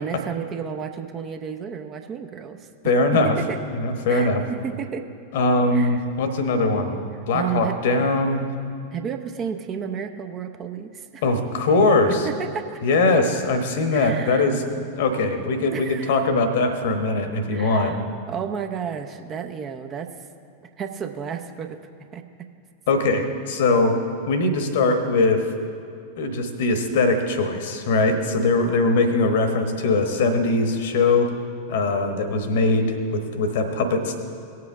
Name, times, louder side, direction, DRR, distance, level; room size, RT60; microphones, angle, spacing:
voice 1, 0.0-2.7 3.2-3.6 4.1-5.1 5.7-6.0 7.3-7.8 8.9-11.2 12.1-12.8 13.9-14.6 15.7-16.2 17.5-20.2 20.6-21.8 22.1-22.2, right 7 dB, 30° right, 6 dB, 0.7 m, -32 dB
voice 2, 2.8-3.3 3.7-4.4 5.3-7.0 7.3-8.4 11.2-12.3 12.8-14.7 15.0-17.9 22.9-24.0 24.3-25.4 26.2-31.3 31.7-34.2, left 3 dB, 55° left, 7 dB, 1.1 m, -21 dB
18.5 x 7.7 x 3.6 m, 2.4 s
figure-of-eight pair, 90°, 0 cm